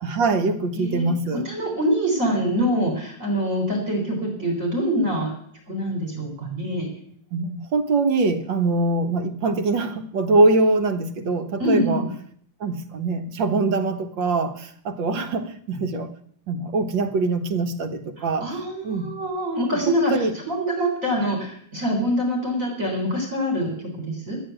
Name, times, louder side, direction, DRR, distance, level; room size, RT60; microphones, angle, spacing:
voice 1, 0.0-1.4 7.3-12.0 12.6-16.1 16.5-18.5 18.8-19.1 19.7-20.3, right 3 dB, 80° right, 7 dB, 2.0 m, -23 dB
voice 2, 0.7-1.2 1.4-5.3 5.7-6.9 11.6-12.1 18.2-24.4, equal, 45° right, 0 dB, 4.2 m, -25 dB
12.5 x 9.4 x 9.2 m, 0.63 s
omnidirectional pair, 2.0 m